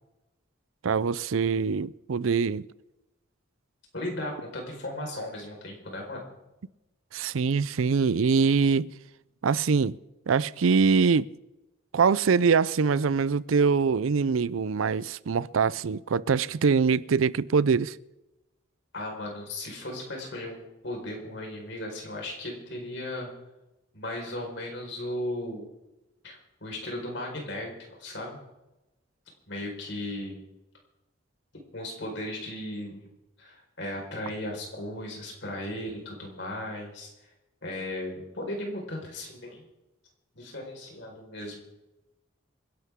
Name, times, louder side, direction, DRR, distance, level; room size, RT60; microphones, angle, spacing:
voice 1, 0.8-2.7 7.1-8.9 9.4-10.0 10.3-11.3 11.9-18.0, right 5 dB, 90° right, 0.5 m, -23 dB
voice 2, 3.9-6.3 18.9-23.3 23.9-25.7 26.2-27.7 28.0-28.4 29.5-30.4 31.7-33.0 33.4-37.1 37.6-39.7 40.3-41.6, left 1 dB, 60° left, 4.6 m, -36 dB
27.0 x 11.5 x 3.7 m
head